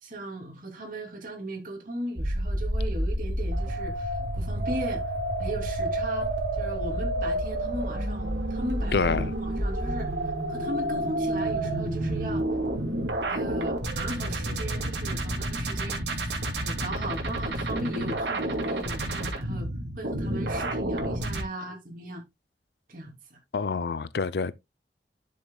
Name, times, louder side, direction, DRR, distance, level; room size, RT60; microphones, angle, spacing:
voice 1, 0.0-5.0 5.4-6.3 6.6-12.4 13.3-19.7 20.0-22.2 22.9-23.4, right 1 dB, 50° right, 2.8 m, -37 dB
sound 1, 2.2-21.4, right 1 dB, 85° right, 2.3 m, -29 dB
voice 2, 8.9-9.2 23.5-24.5, left 4 dB, 65° left, 0.5 m, -27 dB
11.5 x 6.5 x 2.3 m
head